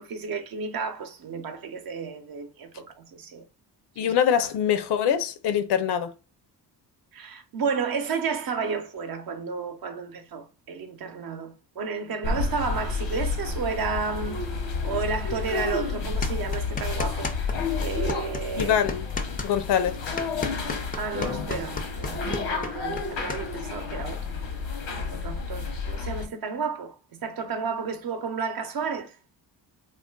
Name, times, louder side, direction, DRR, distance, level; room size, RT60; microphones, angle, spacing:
voice 1, 0.0-3.4 4.0-4.1 7.1-14.4 14.8-17.5 17.8-18.8 21.0-22.2 22.5-24.4 25.1-27.0 27.2-29.1, right 5 dB, 55° right, 0.7 m, -32 dB
voice 2, 4.0-6.1 12.3-12.4 18.6-19.1 19.4-20.0, left 8 dB, 70° left, 0.6 m, -24 dB
sound 1, 12.2-26.3, left 4 dB, 90° left, 0.9 m, -30 dB
sound 2, 16.2-17.6 17.8-23.4, left 4 dB, 20° left, 0.3 m, -33 dB
3.2 x 2.4 x 2.2 m
cardioid pair, 105°, 42 cm